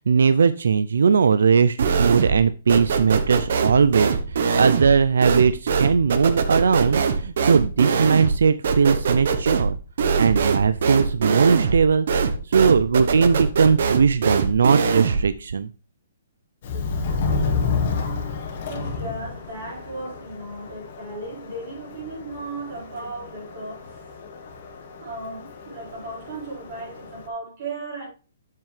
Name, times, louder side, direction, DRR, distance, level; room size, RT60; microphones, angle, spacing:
voice 1, 0.1-9.7 10.2-12.1 12.5-15.7, right 6 dB, 75° right, 0.4 m, -19 dB
sound 1, 1.8-2.4 2.7-15.3, right 5 dB, 50° right, 0.9 m, -23 dB
Subway metro underground, 16.6-27.3, left 4 dB, 35° left, 1.2 m, -30 dB
voice 2, 18.7-24.1 25.0-28.1, right 2 dB, 35° right, 4.6 m, -36 dB
7.5 x 7.4 x 3.2 m
hypercardioid pair, 175°, 0 cm